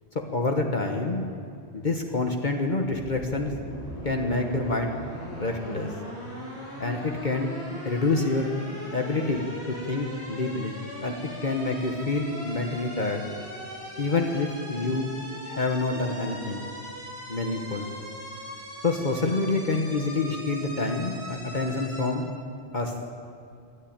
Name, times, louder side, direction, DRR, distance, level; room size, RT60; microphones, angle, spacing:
voice 1, 0.3-1.2 1.7-3.5 4.0-4.9 5.4-5.9 6.8-7.5 7.8-8.5 8.9-11.1 11.4-13.2 14.0-15.1 15.5-16.6 17.3-17.9 18.8-22.3 22.7-22.9, left 3 dB, 45° left, 3 dB, 1.5 m, -27 dB
sound 1, 2.9-22.1, equal, 80° left, 6.8 m, -40 dB
23.5 x 13.5 x 8.9 m, 2.4 s
omnidirectional pair, 1.1 m